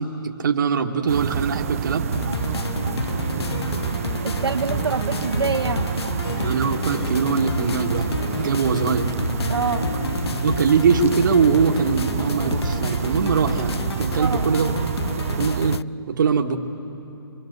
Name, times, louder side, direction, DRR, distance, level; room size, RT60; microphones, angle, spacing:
voice 1, 0.0-2.1 6.4-8.1 8.4-9.1 10.4-14.8 15.4-15.8 16.1-16.6, right 5 dB, 50° right, 3 dB, 1.7 m, -22 dB
sound 1, 1.1-15.8, right 9 dB, 35° right, 0.5 m, -28 dB
sound 2, 2.1-15.8, left 6 dB, 85° left, 0.5 m, -30 dB
Harp, 2.5-13.6, left 3 dB, 60° left, 2.4 m, -39 dB
voice 2, 4.2-5.9 9.5-9.9 14.2-14.4, right 5 dB, 80° right, 3 dB, 1.5 m, -26 dB
26.0 x 24.5 x 6.8 m, 2.8 s
hypercardioid pair, 155°, 13 cm